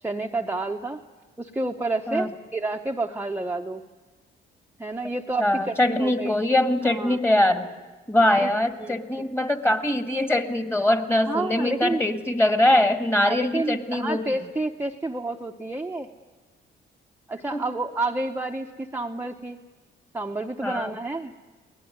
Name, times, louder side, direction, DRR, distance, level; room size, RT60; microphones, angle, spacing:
voice 1, 0.0-1.0 1.4-3.8 4.8-6.3 6.8-7.2 8.4-8.5 8.8-8.9 11.3-12.0 13.2-16.1 17.3-19.6 20.1-21.3, right 2 dB, 10° right, 2 dB, 0.9 m, -29 dB
voice 2, 5.4-7.7 8.1-14.4 17.5-17.6 20.6-20.9, left 1 dB, 10° left, 7 dB, 1.9 m, -22 dB
22.5 x 18.5 x 9.5 m, 1.3 s
cardioid pair, 90°, 20 cm